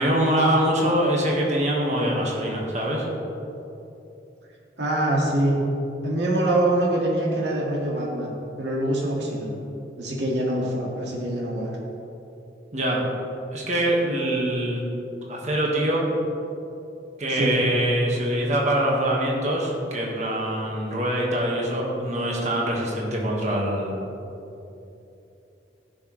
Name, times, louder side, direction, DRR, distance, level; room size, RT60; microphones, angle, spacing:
voice 1, 0.0-3.0 12.7-13.0 13.5-14.8 15.3-16.1 17.2-24.0, right 1 dB, 40° right, -2 dB, 1.5 m, -24 dB
voice 2, 4.8-5.6 6.0-9.6 10.0-11.7 17.3-17.6, right 1 dB, 85° right, -3 dB, 2.0 m, -24 dB
14.5 x 6.1 x 3.2 m, 2.9 s
head